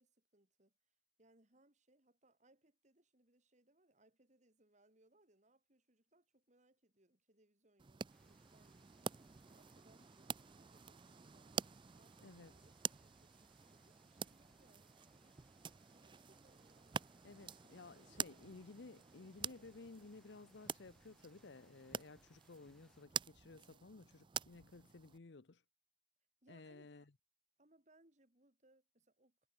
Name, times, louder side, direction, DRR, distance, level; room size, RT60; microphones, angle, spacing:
voice 1, 0.0-9.2 9.5-11.6 11.9-15.4 15.9-17.7 18.1-18.5 26.4-27.1 27.6-29.5, right 1 dB, 45° right, 4.6 m, -72 dB
sound 1, 7.8-25.2, right 7 dB, 30° right, 0.4 m, -48 dB
sound 2, 8.1-23.0, left 1 dB, 5° left, 5.3 m, -75 dB
voice 2, 12.2-12.5 17.2-25.6 26.5-27.0, left 3 dB, 85° left, 0.8 m, -56 dB
head